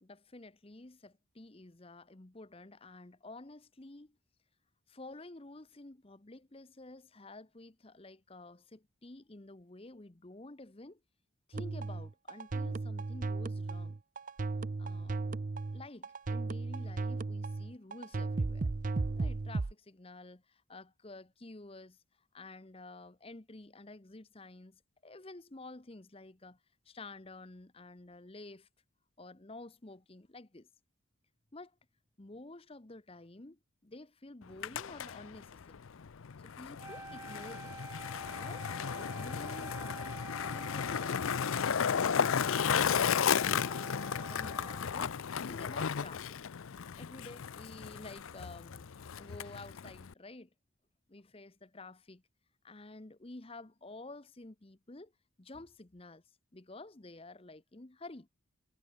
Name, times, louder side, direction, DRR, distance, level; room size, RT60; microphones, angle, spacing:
voice 1, 0.0-4.2 4.9-11.0 11.5-14.0 14.8-15.3 15.7-18.7 19.2-22.0 22.3-26.6 26.9-28.7 29.2-30.7 31.5-31.8 32.2-35.8 36.4-37.8 38.3-38.7 39.0-41.2 44.3-45.2 45.4-46.4 47.0-50.5 51.1-52.2 52.6-55.1 55.4-56.2 56.5-58.3, left 2 dB, 25° left, 0.9 m, -51 dB
sound 1, 11.5-19.7, right 3 dB, 40° right, 0.5 m, -35 dB
Skateboard, 34.4-50.1, left 7 dB, 75° left, 0.5 m, -34 dB
Wind instrument woodwind instrument, 36.8-45.1, right 2 dB, 15° right, 1.8 m, -48 dB
head